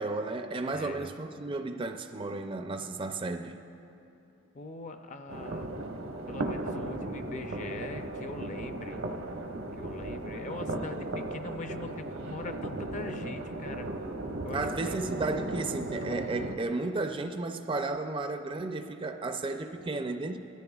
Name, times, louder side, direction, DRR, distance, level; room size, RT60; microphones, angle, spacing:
voice 1, 0.0-3.6 14.5-20.4, right 3 dB, 25° right, 0.4 m, -33 dB
voice 2, 0.7-1.1 4.5-5.7 6.3-9.0 9.7-13.9 14.4-15.0, left 3 dB, 35° left, 0.5 m, -42 dB
sound 1, 5.3-16.6, right 2 dB, 85° right, 0.9 m, -36 dB
19.0 x 13.5 x 2.3 m
head